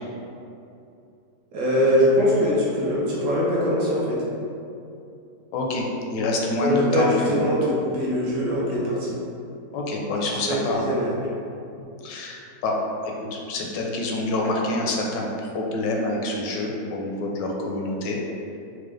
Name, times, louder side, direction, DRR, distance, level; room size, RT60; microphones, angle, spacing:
voice 1, 1.5-4.2 6.6-9.2 10.5-11.2, equal, 65° right, -6 dB, 1.2 m, -22 dB
voice 2, 5.5-7.4 9.7-10.9 12.0-12.8 13.0-18.2, left 2 dB, 80° left, -1 dB, 1.2 m, -27 dB
4.6 x 2.1 x 3.1 m, 2.7 s
omnidirectional pair, 1.9 m